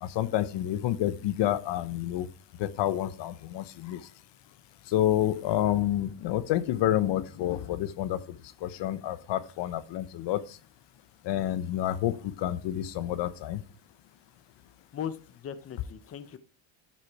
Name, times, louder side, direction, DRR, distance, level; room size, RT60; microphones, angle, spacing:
voice 1, 0.0-2.3 2.6-4.0 4.9-8.2 8.6-10.4 11.2-13.6, left 12 dB, 65° left, 14 dB, 1.0 m, -29 dB
voice 2, 14.9-16.4, left 8 dB, 30° left, 12 dB, 0.8 m, -38 dB
12.0 x 6.1 x 4.7 m, 0.36 s
cardioid pair, 150°, 46 cm